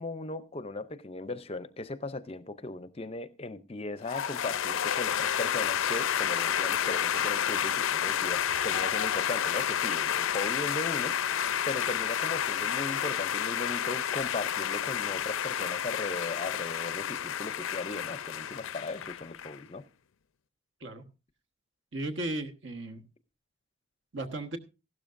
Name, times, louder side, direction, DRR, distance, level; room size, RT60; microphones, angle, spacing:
voice 1, 0.0-11.1 11.7-19.8, left 2 dB, 30° left, 0.5 m, -37 dB
sound 1, 4.1-19.6, left 9 dB, 75° left, 0.5 m, -30 dB
voice 2, 21.9-23.0 24.1-24.6, right 2 dB, 60° right, 1.3 m, -35 dB
15.5 x 12.5 x 2.5 m
head